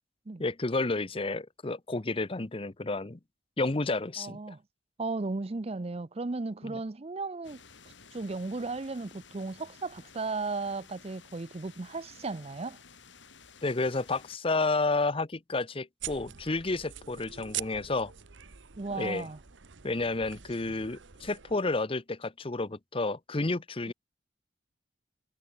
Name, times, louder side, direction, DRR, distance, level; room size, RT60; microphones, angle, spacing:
voice 1, 0.4-3.2 3.6-4.5 6.6-6.8 13.6-18.1 18.9-19.3 19.8-23.9, left 3 dB, 30° left, 0.8 m, -31 dB
voice 2, 4.2-4.6 5.0-7.6 8.1-12.8 18.8-19.4 23.9-24.0, right 3 dB, 35° right, 0.6 m, -35 dB
sound 1, 7.4-14.4, left 5 dB, 85° left, 4.8 m, -54 dB
sound 2, 16.0-21.6, right 11 dB, 85° right, 1.2 m, -44 dB
head